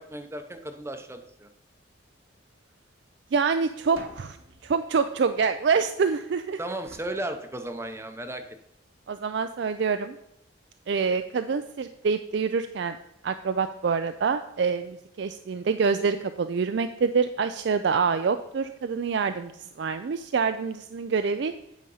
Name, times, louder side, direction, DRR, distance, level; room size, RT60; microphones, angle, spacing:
voice 1, 0.0-1.5 6.6-8.4, right 1 dB, 15° right, 7 dB, 0.7 m, -35 dB
voice 2, 3.3-4.4 4.6-6.6 9.1-10.2 10.9-13.0 13.2-19.5 19.8-21.5, right 5 dB, 60° right, 9 dB, 0.4 m, -26 dB
sound 1, 3.9-6.2 6.8-8.2, right 1 dB, 90° right, 1.5 m, -50 dB
9.4 x 5.0 x 5.5 m, 0.79 s
head